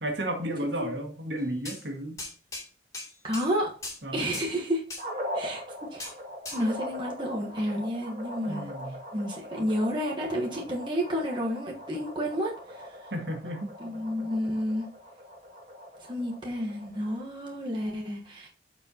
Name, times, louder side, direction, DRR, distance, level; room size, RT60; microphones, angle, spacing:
voice 1, 0.0-2.2 4.0-4.4 8.5-9.0 13.1-13.7, right 1 dB, 70° right, 2 dB, 1.9 m, -33 dB
sound 1, 1.7-1.8 2.2-2.7 2.9-3.5 3.8-4.0 4.3-4.5 4.9-5.0 6.0-6.1 6.5-6.6, left 2 dB, 15° left, 2.6 m, -38 dB
voice 2, 3.2-3.7 4.1-4.8 5.3-5.6 5.9-6.1 6.5-8.7 9.1-13.0 13.8-14.9 16.1-18.5, equal, 25° right, -2 dB, 1.2 m, -30 dB
sound 2, 5.0-17.2, equal, 40° right, 2.4 m, -41 dB
13.0 x 4.5 x 2.8 m, 0.38 s
head